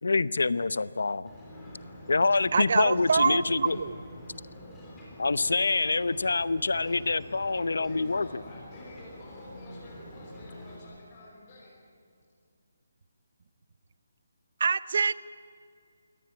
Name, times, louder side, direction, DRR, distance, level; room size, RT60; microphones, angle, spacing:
voice 1, 0.0-1.3 2.1-3.8 5.2-8.4, left 3 dB, 85° left, 17 dB, 0.8 m, -26 dB
Ocean, 1.2-10.8, left 1 dB, 5° left, 3.5 m, -46 dB
voice 2, 2.5-3.9 14.6-15.1, right 5 dB, 45° right, 17 dB, 0.7 m, -25 dB
voice 3, 7.6-11.7, left 1 dB, 25° left, -4 dB, 5.6 m, -49 dB
23.0 x 18.0 x 8.8 m, 2.4 s
hypercardioid pair, 175°, 0 cm